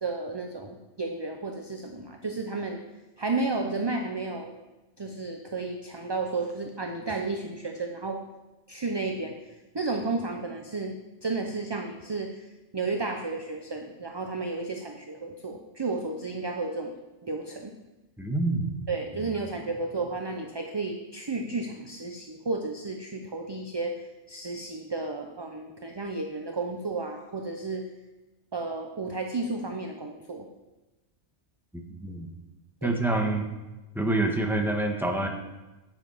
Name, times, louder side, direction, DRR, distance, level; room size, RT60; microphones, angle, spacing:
voice 1, 0.0-2.8 3.2-4.6 5.0-8.2 8.7-9.4 9.7-11.0 11.2-12.5 12.7-16.9 17.2-17.7 18.9-24.0 24.3-27.8 28.5-30.5 32.8-33.0, right 3 dB, 25° right, 3 dB, 0.6 m, -32 dB
voice 2, 18.2-18.9 31.7-32.3 32.8-33.5 33.9-35.3, right 2 dB, ahead, 2 dB, 1.3 m, -27 dB
9.8 x 9.1 x 5.6 m, 1.1 s
omnidirectional pair, 1.3 m